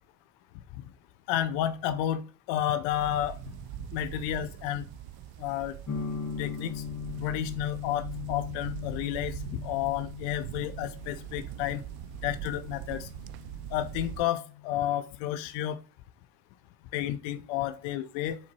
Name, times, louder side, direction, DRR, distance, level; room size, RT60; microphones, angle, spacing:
voice 1, 1.3-2.2 2.5-3.4 3.9-4.8 5.4-5.8 6.4-6.8 7.2-11.8 12.2-13.1 13.7-15.8 16.9-18.4, left 11 dB, 80° left, 0.7 m, -31 dB
sound 1, 2.9-14.3, right 13 dB, 55° right, 0.5 m, -42 dB
sound 2, 5.9-15.6, left 8 dB, 40° left, 1.1 m, -40 dB
7.1 x 4.3 x 3.0 m
hypercardioid pair, 60°, 44 cm